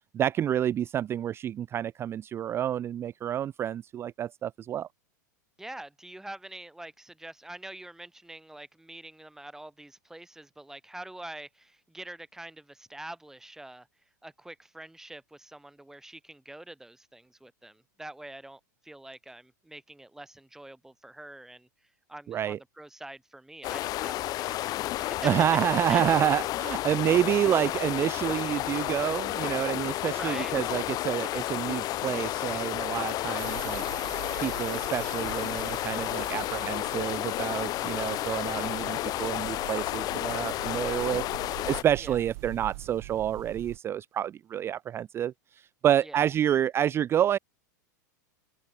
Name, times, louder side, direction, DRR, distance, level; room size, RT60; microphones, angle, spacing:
voice 1, 0.1-4.9 22.3-22.6 25.2-33.8 34.4-41.2 41.5-47.4, right 10 dB, 25° right, 0.4 m, -28 dB
voice 2, 5.6-13.9 14.2-21.7 22.1-24.5 24.8-25.3 25.9-26.0 26.6-26.8 27.1-27.5 30.1-30.5 40.6-41.0 42.0-42.2 46.0-46.2, right 1 dB, 5° right, 1.6 m, -45 dB
sound 1, 23.6-41.8, left 16 dB, 40° left, 1.2 m, -31 dB
sound 2, 33.4-43.8, right 25 dB, 60° right, 3.9 m, -43 dB
hypercardioid pair, 110°, 10 cm